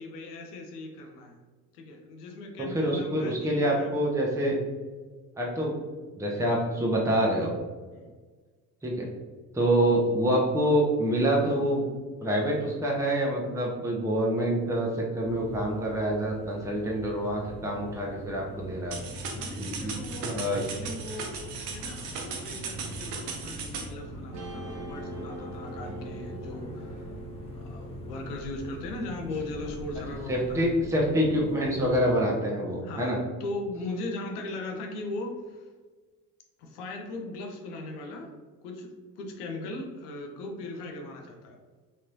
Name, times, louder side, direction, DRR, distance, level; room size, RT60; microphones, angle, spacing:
voice 1, 0.0-1.4 1.7-4.0 7.9-8.2 19.3-27.1 27.5-30.7 32.8-35.7 36.6-38.3 38.6-38.9 39.2-41.6, left 2 dB, 70° left, 3 dB, 0.8 m, -39 dB
voice 2, 2.6-4.6 5.4-5.7 6.2-7.5 8.8-9.1 9.5-11.8 12.2-19.0 19.6-19.9 20.2-20.6 30.3-33.2, equal, 5° right, -3 dB, 0.9 m, -26 dB
sound 1, 15.2-32.1, equal, 10° left, 1.3 m, -42 dB
sound 2, 18.9-23.9, right 5 dB, 65° right, 0.8 m, -37 dB
Guitar, 24.3-30.8, right 1 dB, 35° right, 0.7 m, -45 dB
4.2 x 3.1 x 2.6 m, 1.4 s
figure-of-eight pair, 55°, 47 cm